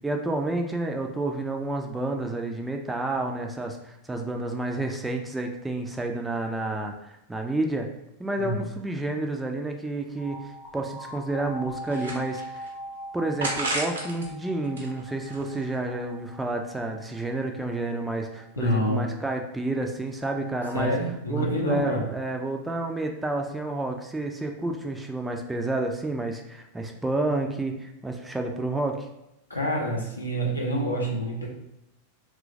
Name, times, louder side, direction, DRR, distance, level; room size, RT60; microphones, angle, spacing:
voice 1, 0.0-7.9 8.2-12.6 13.1-20.9 21.3-29.1, right 2 dB, 10° right, 3 dB, 0.3 m, -30 dB
voice 2, 8.4-8.7 18.6-19.0 20.7-22.1 29.5-31.5, equal, 80° left, -2 dB, 0.7 m, -27 dB
sound 1, 10.2-19.2 20.2-20.9, equal, 50° left, 0.8 m, -42 dB
sound 2, 10.7-10.8 11.3-12.7 13.4-14.3 14.6-15.8, right 2 dB, 70° right, 0.7 m, -33 dB
3.0 x 2.3 x 2.5 m, 0.87 s
figure-of-eight pair, 90°, 0 cm